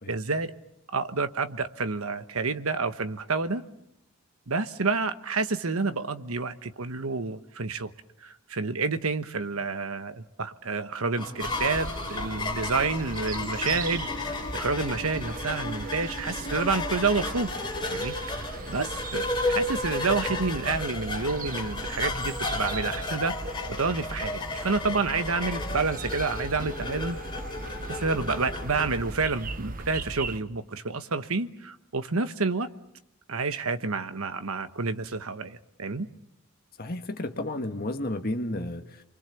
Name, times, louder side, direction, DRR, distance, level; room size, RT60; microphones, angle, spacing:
voice 1, 0.1-0.5 0.9-3.6 4.5-7.9 8.2-17.5 17.8-18.4 18.7-23.3 23.7-27.2 27.9-32.7 33.3-36.1, right 4 dB, 75° right, 10 dB, 1.2 m, -29 dB
sound 1, 11.2-29.0, left 3 dB, 20° left, 3.1 m, -33 dB
sound 2, 11.4-30.4, right 3 dB, 40° right, 1.0 m, -38 dB
voice 2, 36.8-39.0, left 1 dB, 45° left, 6 dB, 1.7 m, -32 dB
29.5 x 23.5 x 7.1 m, 0.83 s
head